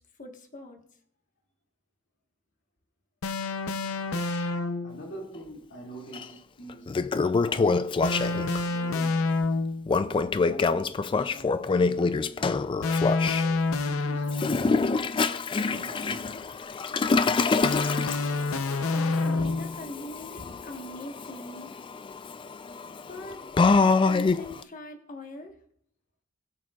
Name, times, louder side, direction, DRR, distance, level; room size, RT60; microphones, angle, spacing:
voice 1, 0.2-0.8 18.2-21.7 23.1-23.4 23.8-25.6, left 1 dB, 40° left, 1.3 m, -42 dB
sound 1, 3.2-5.0 8.0-9.9 12.8-14.8 17.6-19.8, left 3 dB, 85° left, 0.6 m, -28 dB
voice 2, 4.8-7.1 7.4-9.4 9.9-12.7 13.0-16.6, equal, 60° left, 2.3 m, -45 dB
Toilet flush, 6.1-6.2 6.7-8.6 9.9-13.4 14.3-24.6, left 4 dB, 25° left, 0.3 m, -26 dB
21.0 x 7.5 x 2.4 m
head